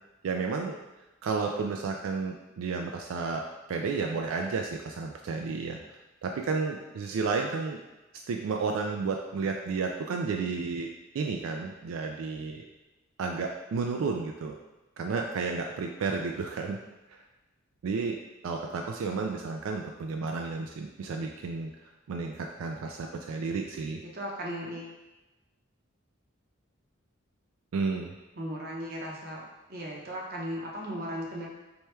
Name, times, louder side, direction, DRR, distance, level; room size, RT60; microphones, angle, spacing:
voice 1, 0.2-0.8 1.2-3.4 3.7-7.8 8.1-10.9 11.1-12.6 13.2-14.6 15.0-16.8 17.1-17.2 17.8-18.2 18.4-21.7 22.1-24.0 27.7-28.1, right 4 dB, 90° right, 2 dB, 0.3 m, -32 dB
voice 2, 24.1-25.0 28.4-29.4 29.7-31.5, equal, 50° right, -2 dB, 0.8 m, -36 dB
4.4 x 2.2 x 3.2 m, 1.1 s
head